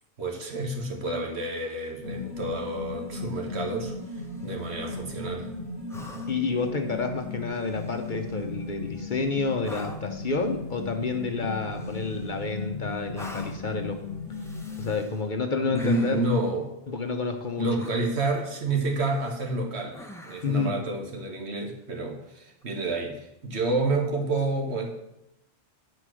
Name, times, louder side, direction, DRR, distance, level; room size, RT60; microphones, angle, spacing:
voice 1, 0.2-5.5 15.6-16.7 17.6-24.9, right 2 dB, 80° right, 2 dB, 1.6 m, -29 dB
sound 1, 2.0-14.9, left 3 dB, 55° right, 3.0 m, -37 dB
sound 2, 4.0-4.7 5.9-6.6 7.6-8.3 9.6-10.2 11.7-12.5 13.1-13.7 14.3-15.2 15.7-16.4 17.8-18.3 18.8-19.4 19.9-20.7 22.5-22.6, left 1 dB, 5° left, 0.8 m, -46 dB
voice 2, 6.3-14.0 14.8-16.2 16.9-17.7 20.4-20.7, left 4 dB, 50° left, 5 dB, 0.9 m, -29 dB
10.0 x 4.4 x 6.2 m, 0.83 s
omnidirectional pair, 1.1 m